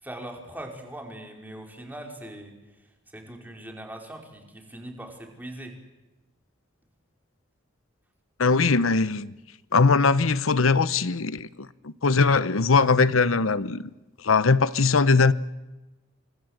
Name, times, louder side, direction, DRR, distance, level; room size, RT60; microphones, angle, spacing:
voice 1, 0.0-2.5 3.1-5.8, right 1 dB, 10° right, 4.7 m, -40 dB
voice 2, 8.4-9.3 9.7-13.8 14.2-15.3, left 4 dB, 90° left, 0.9 m, -21 dB
29.0 x 25.0 x 8.0 m
head